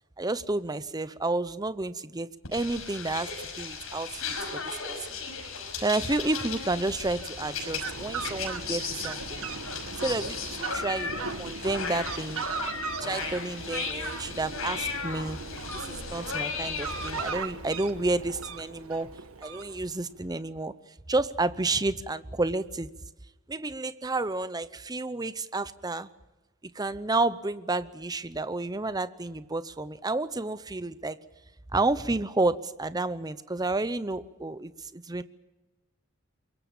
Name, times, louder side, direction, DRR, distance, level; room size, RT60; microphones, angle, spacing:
voice 1, 0.2-5.2 5.8-9.5 10.0-12.4 13.0-15.4 15.7-19.1 19.4-20.7 21.1-22.9 23.5-26.1 26.7-31.2 31.7-35.2, right 2 dB, 20° right, 14 dB, 0.7 m, -30 dB
sound 1, 2.4-17.3, left 5 dB, 80° left, 6.0 m, -36 dB
Fowl, 7.1-20.1, right 4 dB, 85° right, 1.7 m, -38 dB
24.0 x 22.5 x 7.2 m, 1.0 s
head